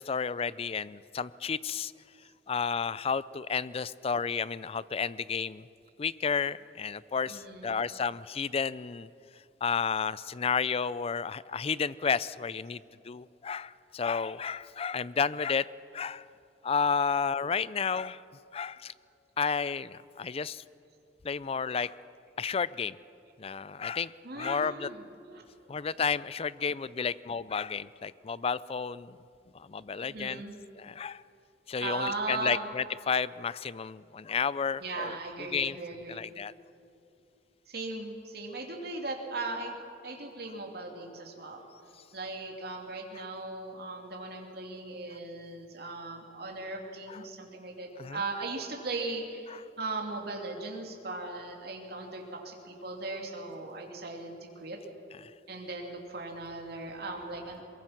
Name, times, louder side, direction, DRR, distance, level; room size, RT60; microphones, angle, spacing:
voice 1, 0.0-1.9 2.5-5.6 6.0-9.1 9.6-15.7 15.9-16.2 16.6-18.2 18.5-18.9 19.4-20.6 21.2-21.9 22.4-23.0 23.4-24.9 25.7-29.2 29.5-30.4 30.8-31.2 31.7-35.2 35.5-35.8 36.1-36.5 47.1-47.2 48.0-48.2 49.5-49.6, left 6 dB, 35° left, 18 dB, 0.4 m, -32 dB
voice 2, 7.3-7.7 24.2-25.0 25.3-25.4 30.0-30.6 31.8-32.7 34.8-36.3 37.7-39.7 40.0-41.6 42.1-49.5 49.8-54.8 55.5-57.6, right 3 dB, 60° right, 1 dB, 2.7 m, -38 dB
22.5 x 22.5 x 5.9 m, 2.6 s
head